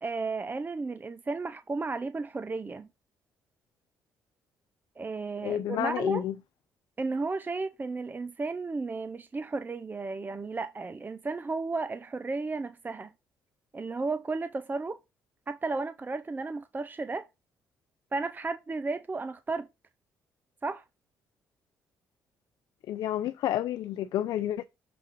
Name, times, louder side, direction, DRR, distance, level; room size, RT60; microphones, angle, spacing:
voice 1, 0.0-2.9 5.0-6.2 7.0-13.1 13.7-15.0 15.5-17.2 18.1-19.7 20.6-20.8, right 3 dB, 25° right, 0.6 m, -33 dB
voice 2, 5.4-6.3 22.9-24.6, left 12 dB, 70° left, 0.4 m, -30 dB
6.9 x 3.7 x 5.3 m
supercardioid pair, 65°, 7 cm